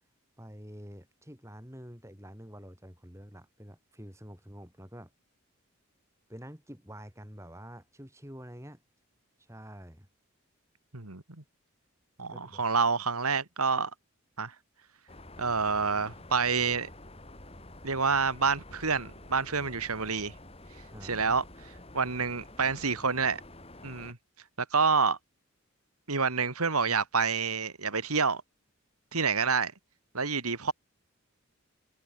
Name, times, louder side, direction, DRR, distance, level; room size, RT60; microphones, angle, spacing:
voice 1, 0.4-5.1 6.3-8.8 9.4-10.1 12.3-12.6 20.9-21.4, equal, 15° right, 6.6 m, -47 dB
voice 2, 12.2-13.9 14.4-14.5 15.4-16.9 17.8-20.3 21.0-21.4 21.9-23.4 23.8-24.2 24.6-25.2 26.1-28.4 29.1-29.7 30.1-30.7, right 5 dB, 90° right, 2.7 m, -28 dB
sound 1, 15.1-24.1, left 1 dB, 25° left, 4.0 m, -49 dB
head